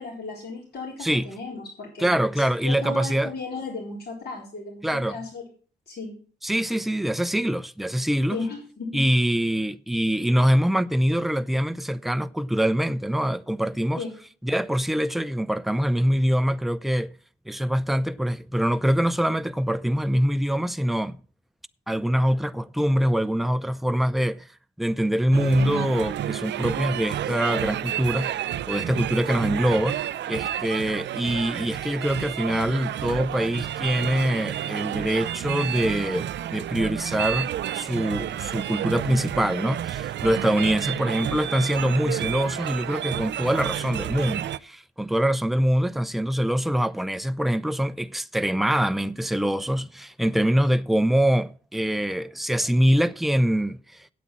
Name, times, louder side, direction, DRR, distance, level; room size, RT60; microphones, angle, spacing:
voice 1, 0.0-2.3 2.6-5.4 5.9-6.1 8.3-8.9 14.0-14.1, left 3 dB, 60° left, 3.9 m, -35 dB
voice 2, 2.0-3.3 4.8-5.2 6.4-8.4 8.9-14.0 14.4-17.1 17.5-21.2 21.9-24.5 24.8-28.3 28.7-30.0 30.3-53.8, equal, ahead, 0.6 m, -24 dB
sound 1, 25.3-44.6, right 11 dB, 75° right, 0.5 m, -30 dB
8.4 x 8.4 x 7.5 m
cardioid pair, 75°, 18 cm